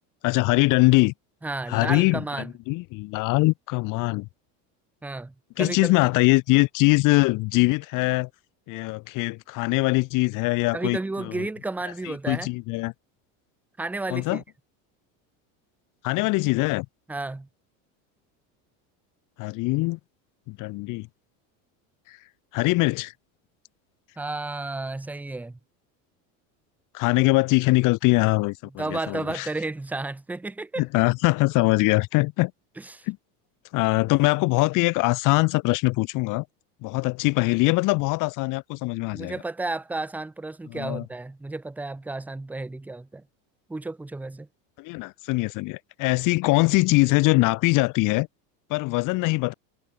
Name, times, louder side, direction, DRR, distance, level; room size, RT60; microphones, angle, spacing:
voice 1, 0.2-1.1 1.7-4.3 5.6-8.3 8.7-11.4 12.0-12.9 14.1-14.4 16.0-16.9 19.4-20.0 20.5-21.1 22.5-23.1 26.9-29.5 30.8-32.5 33.1-33.2 33.7-36.4 36.8-39.3 40.7-41.0 44.8-48.3 48.7-49.5, left 23 dB, 50° left, 0.7 m, -22 dB
voice 2, 1.4-2.5 5.0-5.9 10.7-12.5 13.8-14.4 17.1-17.5 24.2-25.6 28.8-30.8 32.8-33.0 39.1-43.2 43.7-44.5, right 2 dB, 5° right, 0.5 m, -32 dB
supercardioid pair, 125°, 40 cm